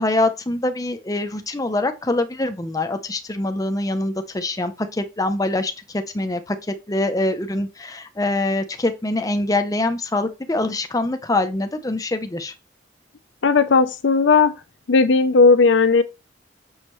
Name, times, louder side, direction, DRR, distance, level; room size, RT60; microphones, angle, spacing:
voice 1, 0.0-12.5, left 2 dB, 20° left, 0.6 m, -24 dB
voice 2, 13.4-14.5 14.9-16.0, left 4 dB, 70° left, 0.6 m, -15 dB
6.4 x 6.4 x 3.1 m
head